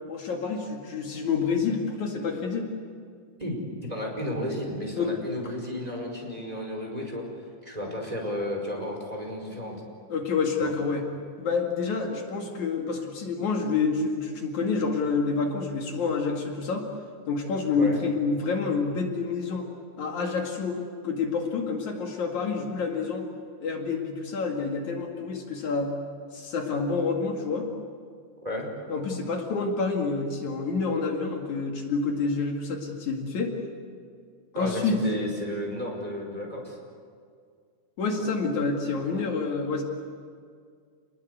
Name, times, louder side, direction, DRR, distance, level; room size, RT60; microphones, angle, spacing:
voice 1, 0.1-2.7 5.0-5.1 10.1-11.0 11.4-16.9 17.3-19.7 20.0-23.3 23.6-26.0 26.3-27.7 28.9-33.5 34.5-35.0 38.0-39.8, left 4 dB, 65° left, 1 dB, 3.6 m, -28 dB
voice 2, 3.4-7.2 7.6-9.8 10.6-10.7 17.8-18.0 28.4-28.7 34.5-36.8 39.0-39.2, left 1 dB, 10° right, 0 dB, 5.1 m, -33 dB
29.0 x 20.5 x 8.2 m, 2.1 s
omnidirectional pair, 3.6 m